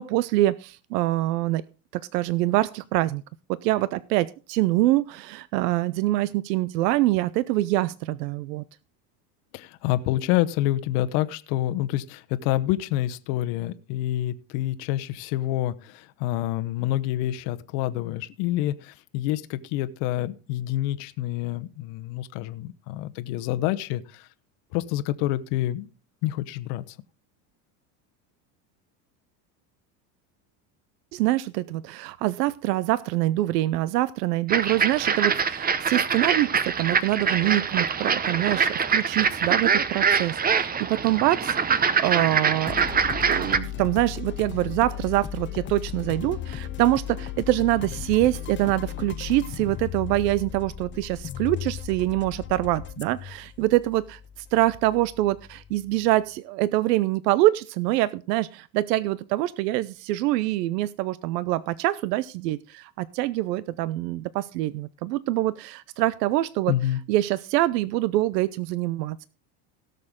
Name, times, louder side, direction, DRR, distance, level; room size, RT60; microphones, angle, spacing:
voice 1, 0.0-1.6 1.9-3.2 3.5-8.6 31.1-42.8 43.3-66.7 67.1-69.3, right 16 dB, 85° right, 0.6 m, -25 dB
voice 2, 9.5-24.3 24.7-25.9 26.2-27.0 66.7-67.0, left 14 dB, 65° left, 1.0 m, -27 dB
sound 1, 34.5-43.6, right 6 dB, 20° right, 0.7 m, -24 dB
sound 2, 42.7-56.1, left 10 dB, 25° left, 0.5 m, -36 dB
17.0 x 6.7 x 3.6 m
supercardioid pair, 105°, 47 cm